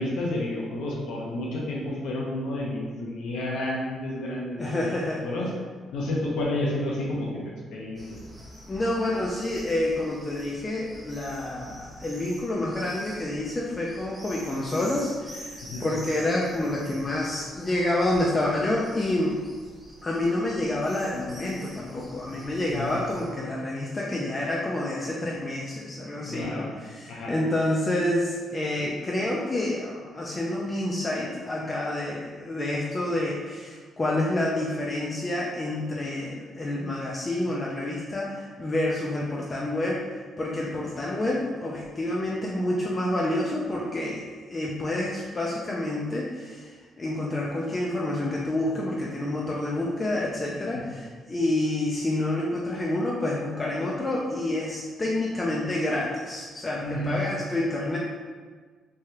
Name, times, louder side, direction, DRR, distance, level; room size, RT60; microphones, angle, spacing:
voice 1, 0.0-4.8 5.2-5.5 5.9-7.4 7.7-8.2 15.6-15.8 22.7-22.9 26.2-26.7 27.1-27.3 50.7-51.0 56.8-57.2, left 1 dB, 85° left, -3 dB, 0.7 m, -30 dB
voice 2, 4.6-5.3 8.7-15.5 15.8-19.4 20.0-40.0 40.4-44.2 44.5-46.7 47.0-58.0, left 1 dB, 30° left, -3 dB, 0.4 m, -28 dB
sound 1, 8.0-23.3, equal, 30° right, 1.1 m, -46 dB
3.2 x 2.3 x 2.8 m, 1.5 s
cardioid pair, 90°, 0 cm